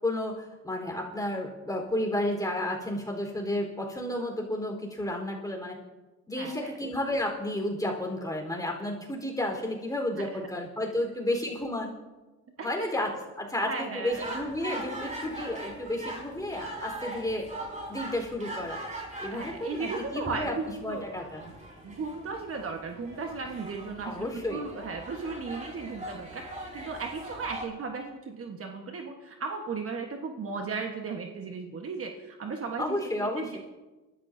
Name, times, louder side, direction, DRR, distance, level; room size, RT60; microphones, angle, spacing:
voice 1, 0.0-5.8 6.3-11.9 12.6-17.5 17.9-18.8 19.2-20.5 20.8-21.5 24.0-24.6 32.8-33.6, left 1 dB, 10° left, 1 dB, 4.1 m, -32 dB
voice 2, 6.4-6.7 12.6-12.9 13.6-14.4 19.3-21.1 21.8-33.6, right 4 dB, 50° right, 3 dB, 1.4 m, -36 dB
sound 1, 14.1-27.7, right 1 dB, 25° right, 4.4 m, -41 dB
28.0 x 13.0 x 2.7 m, 1.1 s
cardioid pair, 90°, 30 cm